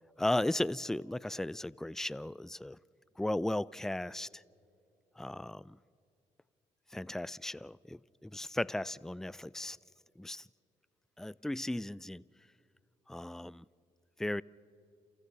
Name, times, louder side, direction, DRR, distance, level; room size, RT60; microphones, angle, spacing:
voice 1, 0.2-2.8 3.2-4.4 5.2-5.8 6.9-9.8 10.2-10.5 11.2-12.2 13.1-13.6 14.2-14.4, left 1 dB, 5° left, 0.4 m, -36 dB
30.0 x 29.0 x 4.1 m
hypercardioid pair, 50°, 15 cm